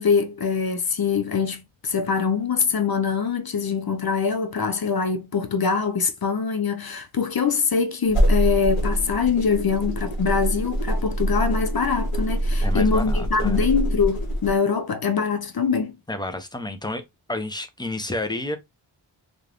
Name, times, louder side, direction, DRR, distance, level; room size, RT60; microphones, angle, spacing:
voice 1, 0.0-15.9, left 5 dB, 50° left, 0.5 m, -23 dB
sound 1, 8.1-14.5, right 1 dB, 85° left, 1.1 m, -24 dB
voice 2, 12.6-13.7 16.1-17.0 17.3-18.6, left 2 dB, 10° left, 0.6 m, -30 dB
2.5 x 2.4 x 3.3 m
wide cardioid pair, 45°, 49 cm